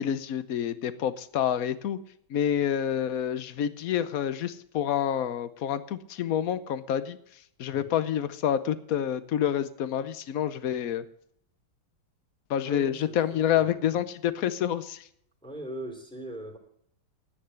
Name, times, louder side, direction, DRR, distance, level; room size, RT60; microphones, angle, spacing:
voice 1, 0.0-2.0 2.3-7.2 7.6-11.0 12.5-15.1, left 10 dB, 60° left, 14 dB, 0.9 m, -28 dB
voice 2, 12.6-13.2 13.5-13.8 15.4-16.6, right 1 dB, ahead, 1 dB, 3.0 m, -40 dB
11.0 x 9.8 x 6.9 m, 0.66 s
omnidirectional pair, 2.3 m